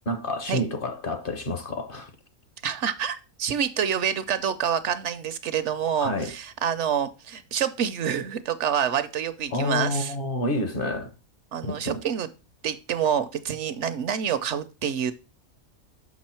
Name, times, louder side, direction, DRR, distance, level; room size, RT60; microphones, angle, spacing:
voice 1, 0.1-2.1 6.0-6.3 9.5-11.1 11.6-12.0, left 1 dB, 50° left, 0.9 m, -28 dB
voice 2, 2.6-10.1 11.5-12.3 12.6-15.1, right 8 dB, 70° right, 0.8 m, -27 dB
6.2 x 6.1 x 4.3 m
omnidirectional pair, 1.4 m